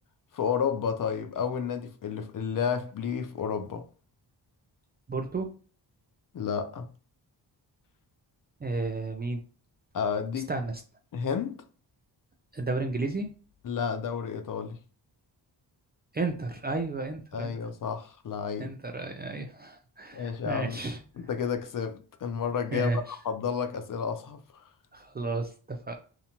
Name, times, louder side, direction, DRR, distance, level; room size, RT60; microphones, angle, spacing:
voice 1, 0.3-3.8 6.3-6.9 9.9-10.5 11.1-11.6 13.6-14.8 17.3-18.7 20.1-20.8 21.2-24.6, left 7 dB, 50° left, 0.4 m, -31 dB
voice 2, 5.1-5.5 8.6-9.4 10.5-10.8 12.5-13.3 16.1-17.5 18.6-21.0 22.7-23.0 24.9-26.0, right 3 dB, 25° right, 0.3 m, -32 dB
2.7 x 2.1 x 2.8 m
cardioid pair, 65°, 45 cm